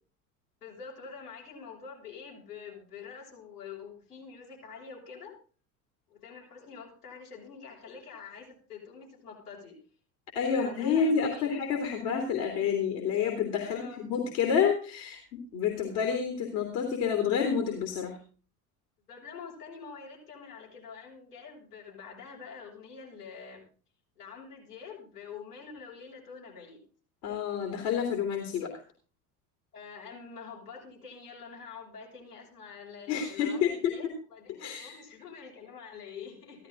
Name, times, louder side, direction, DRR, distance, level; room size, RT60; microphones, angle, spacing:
voice 1, 0.6-5.3 6.1-9.8 10.5-11.5 13.6-14.0 19.1-23.6 24.1-26.8 29.7-36.7, left 6 dB, 75° left, -4 dB, 6.6 m, -46 dB
voice 2, 10.3-18.2 27.2-28.7 33.1-34.1 34.5-35.0, left 7 dB, 55° left, 3 dB, 3.0 m, -29 dB
15.0 x 13.0 x 3.9 m, 0.39 s
figure-of-eight pair, 65°, 46 cm